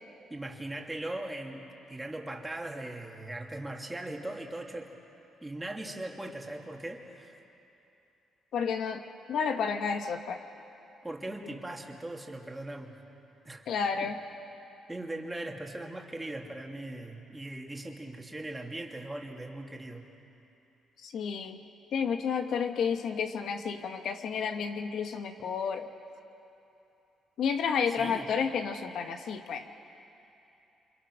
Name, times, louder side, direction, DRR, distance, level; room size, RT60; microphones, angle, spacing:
voice 1, 0.3-5.0 5.4-7.3 11.0-13.0 13.4-13.7 14.0-14.1 14.9-20.1 27.9-28.3, right 1 dB, 15° right, 1 dB, 2.5 m, -39 dB
voice 2, 8.5-9.0 9.3-10.4 13.7-14.2 21.0-21.6 21.9-25.9 27.4-29.7, left 6 dB, 70° left, 6 dB, 1.3 m, -31 dB
27.5 x 26.0 x 6.3 m, 2.9 s
cardioid pair, 90°, 0 cm